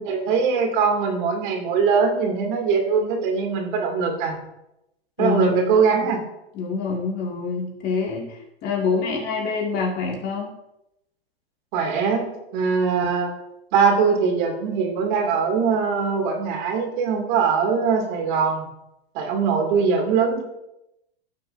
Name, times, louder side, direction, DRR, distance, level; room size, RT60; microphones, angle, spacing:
voice 1, 0.0-4.4 5.2-6.2 11.7-13.3 13.7-18.7 19.1-20.4, right 5 dB, 50° right, 2 dB, 2.6 m, -21 dB
voice 2, 5.2-5.5 6.5-10.5, left 4 dB, 30° left, -1 dB, 2.2 m, -26 dB
16.5 x 6.6 x 2.7 m, 0.87 s
hypercardioid pair, 140°, 32 cm